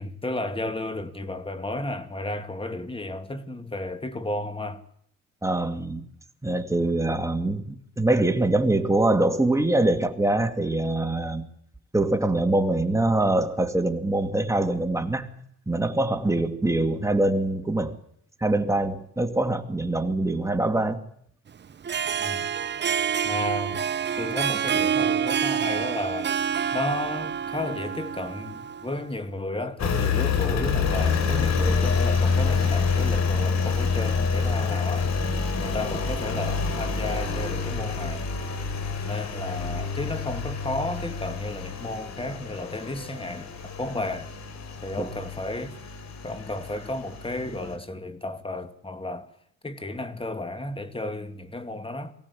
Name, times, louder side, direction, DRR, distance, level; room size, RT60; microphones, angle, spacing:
voice 1, 0.0-4.8 22.2-22.5 23.2-23.8 24.2-26.3 26.7-35.1 35.6-38.3 39.0-44.3 44.8-45.8 46.2-49.3 49.6-52.1, left 1 dB, 20° left, 2.2 m, -33 dB
voice 2, 5.4-6.0 6.4-11.5 11.9-15.3 15.7-18.0 18.4-21.0 45.0-45.1, right 2 dB, 10° right, 2.4 m, -24 dB
Harp, 21.7-29.1, right 7 dB, 35° right, 0.8 m, -27 dB
Engine, 29.8-47.7, left 5 dB, 60° left, 4.0 m, -27 dB
23.0 x 17.5 x 8.5 m
cardioid pair, 90°, 30 cm